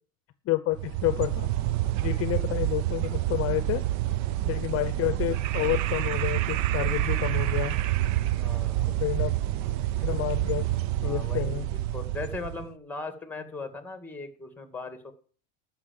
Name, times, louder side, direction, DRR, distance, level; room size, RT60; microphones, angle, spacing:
voice 1, 0.4-1.5 2.0-3.8 4.4-7.8 8.8-9.4 10.0-10.7 11.0-11.7, left 17 dB, 40° left, 12 dB, 0.8 m, -29 dB
sound 1, 0.7-12.7, right 14 dB, 55° right, 0.7 m, -28 dB
voice 2, 8.4-8.9 11.0-15.1, left 3 dB, 5° left, 8 dB, 2.1 m, -39 dB
13.5 x 5.9 x 7.6 m, 0.42 s
cardioid pair, 140°, 34 cm